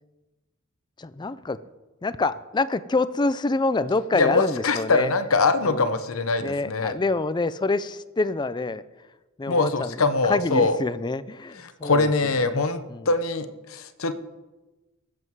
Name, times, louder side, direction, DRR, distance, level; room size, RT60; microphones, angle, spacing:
voice 1, 1.0-1.6 2.0-5.1 5.6-6.0 6.4-8.8 9.4-10.0 10.3-12.6 12.9-13.1, left 3 dB, 20° left, 15 dB, 0.4 m, -26 dB
voice 2, 4.1-6.9 9.5-10.8 11.8-14.2, left 3 dB, 80° left, 10 dB, 0.9 m, -23 dB
20.0 x 7.8 x 4.7 m, 1.1 s
head